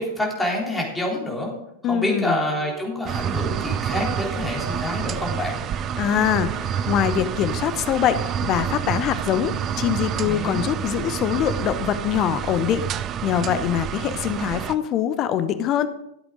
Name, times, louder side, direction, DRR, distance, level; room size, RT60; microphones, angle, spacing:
voice 1, 0.0-1.5 1.9-5.6 10.2-10.6, left 1 dB, 5° left, -2 dB, 3.6 m, -27 dB
voice 2, 1.8-2.3 6.0-12.9 13.2-15.9, left 9 dB, 35° left, 12 dB, 0.8 m, -23 dB
sound 1, 2.5-6.8, right 1 dB, 80° right, 5.6 m, -40 dB
sound 2, 3.1-14.8, right 8 dB, 30° right, 0.6 m, -28 dB
13.0 x 8.4 x 5.0 m, 0.79 s
figure-of-eight pair, 90°, 0 cm